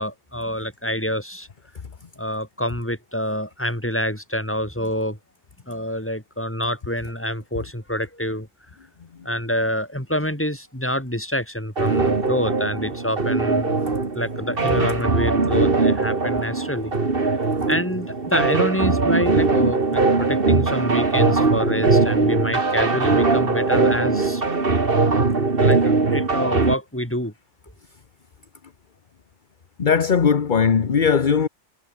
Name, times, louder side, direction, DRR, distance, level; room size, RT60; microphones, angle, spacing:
voice 1, 0.0-1.5 2.2-5.2 5.7-8.5 9.2-16.9 17.7-24.4 25.6-27.3, equal, 10° left, 5.7 m, -27 dB
sound 1, 11.8-26.7, right 3 dB, 50° right, 2.4 m, -20 dB
voice 2, 29.8-31.5, left 6 dB, 45° left, 1.1 m, -18 dB
omnidirectional pair, 1.2 m